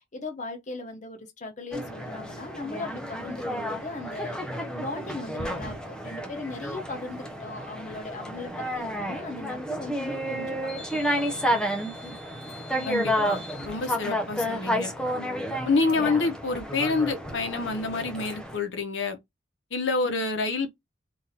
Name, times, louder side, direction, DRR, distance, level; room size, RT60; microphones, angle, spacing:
voice 1, 0.0-10.6 10.9-11.9 20.0-20.3, left 3 dB, 40° left, 0.8 m, -38 dB
sound 1, 1.7-18.6, equal, 5° left, 0.6 m, -31 dB
voice 2, 12.8-14.9 15.6-19.2 19.7-20.7, left 3 dB, 70° left, 0.9 m, -27 dB
4.0 x 2.5 x 2.8 m
head